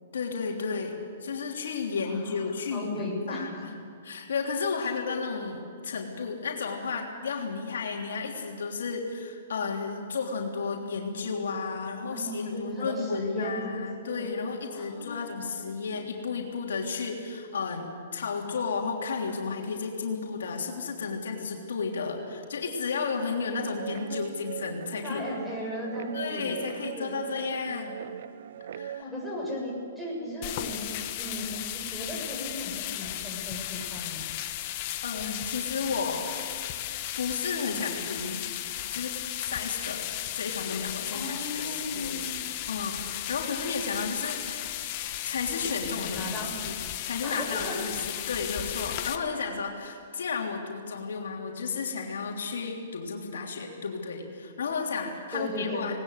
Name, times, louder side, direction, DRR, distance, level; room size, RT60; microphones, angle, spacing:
voice 1, 0.1-3.7 4.0-25.2 26.1-27.9 28.7-29.0 35.0-36.3 37.1-38.4 38.9-40.1 40.3-44.6 45.2-46.2 46.6-46.7 47.0-56.0, left 5 dB, 80° left, 0 dB, 3.3 m, -33 dB
voice 2, 2.0-3.4 4.8-4.9 11.9-14.3 14.7-15.6 23.9-24.1 25.0-27.2 29.0-30.8 31.2-34.2 41.1-42.3 46.1-46.6 47.2-47.7 55.3-55.9, left 1 dB, 5° right, -3 dB, 7.5 m, -36 dB
Guitar, 23.6-29.0, right 10 dB, 65° right, 0.5 m, -40 dB
sound 1, 30.4-49.2, left 13 dB, 40° left, 1.5 m, -35 dB
19.5 x 19.5 x 8.2 m, 2.3 s
hypercardioid pair, 140°, 0 cm